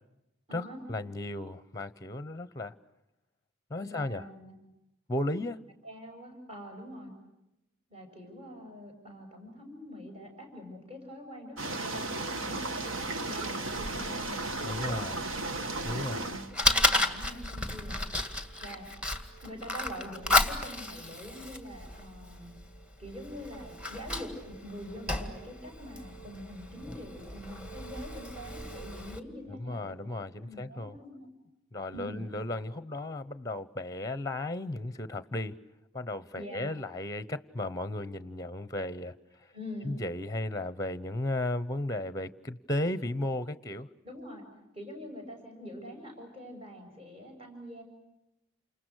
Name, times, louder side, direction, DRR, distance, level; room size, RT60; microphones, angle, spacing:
voice 1, 0.5-2.8 3.7-4.3 5.1-5.6 14.6-15.2 15.8-16.3 29.5-31.0 31.7-35.5 35.9-39.5 39.8-43.9, left 1 dB, 15° left, 0.9 m, -35 dB
voice 2, 3.8-4.6 5.8-7.1 7.9-15.0 15.6-15.9 16.2-18.0 18.6-18.9 19.4-22.5 23.0-30.1 30.4-31.3 31.9-32.2 36.4-36.7 39.5-40.0 44.0-44.4 44.7-47.8, left 1 dB, 30° right, 7.1 m, -44 dB
sound 1, 11.6-16.5, right 2 dB, 65° right, 1.7 m, -34 dB
Fire, 15.7-29.2, left 2 dB, 5° right, 2.0 m, -33 dB
29.5 x 27.5 x 6.4 m
head